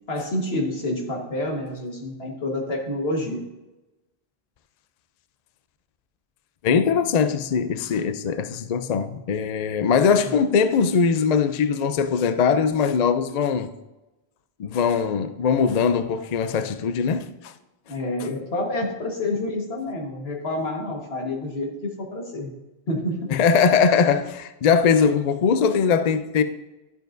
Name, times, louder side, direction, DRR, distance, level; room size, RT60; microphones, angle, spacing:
voice 1, 0.1-3.4 10.2-10.3 17.9-22.5 22.9-23.2, left 1 dB, 70° left, 1.8 m, -28 dB
voice 2, 6.6-13.7 14.6-17.5 23.3-26.4, left 6 dB, 55° left, 0.5 m, -21 dB
11.5 x 7.0 x 2.6 m
omnidirectional pair, 1.1 m